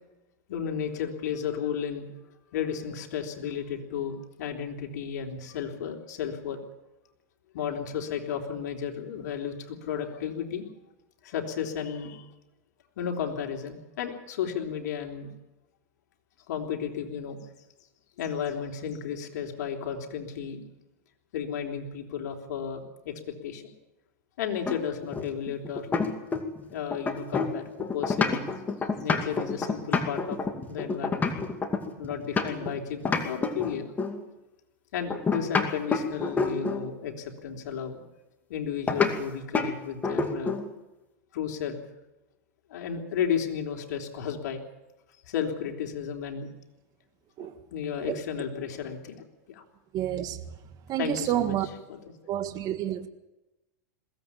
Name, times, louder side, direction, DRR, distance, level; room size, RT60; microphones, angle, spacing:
voice 1, 0.5-2.1 2.5-6.6 7.5-10.7 11.2-12.3 13.0-15.3 16.5-17.4 18.2-20.6 21.3-23.6 24.4-26.0 26.7-28.5 29.0-30.4 30.7-31.3 32.0-33.9 34.9-38.0 38.5-40.5 41.3-41.8 42.7-44.6 45.2-46.5 47.7-49.6 51.0-51.6 51.9-52.0, left 8 dB, 75° left, 3.5 m, -33 dB
sound 1, 24.6-26.6 26.9-32.7 33.0-34.2 35.1-36.9 38.9-39.1 39.5-39.7 40.0-40.7, left 4 dB, 15° left, 2.4 m, -28 dB
voice 2, 49.9-50.4 50.9-51.7 52.3-53.1, right 12 dB, 40° right, 1.7 m, -29 dB
21.5 x 16.5 x 8.7 m
supercardioid pair, 125°, 9 cm